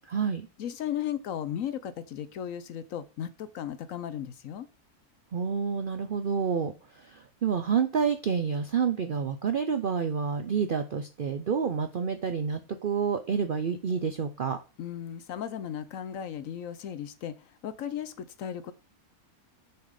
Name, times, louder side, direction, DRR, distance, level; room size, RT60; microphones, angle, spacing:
voice 1, 0.0-0.5 5.3-14.6, right 6 dB, 60° right, 9 dB, 0.5 m, -29 dB
voice 2, 0.6-4.7 14.8-18.7, left 9 dB, 65° left, 13 dB, 1.0 m, -36 dB
6.6 x 4.4 x 4.9 m, 0.32 s
omnidirectional pair, 1.6 m